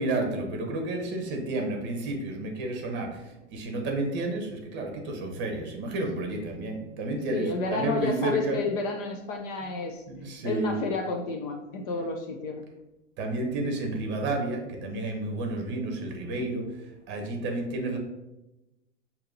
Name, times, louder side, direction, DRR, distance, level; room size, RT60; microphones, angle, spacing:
voice 1, 0.0-8.6 10.1-10.8 13.2-16.7 17.1-18.0, right 2 dB, 30° right, 3 dB, 1.0 m, -31 dB
voice 2, 7.3-10.0 10.4-12.6 16.4-16.5, left 3 dB, 35° left, 3 dB, 0.4 m, -31 dB
6.5 x 2.9 x 2.6 m, 0.98 s
hypercardioid pair, 125°, 37 cm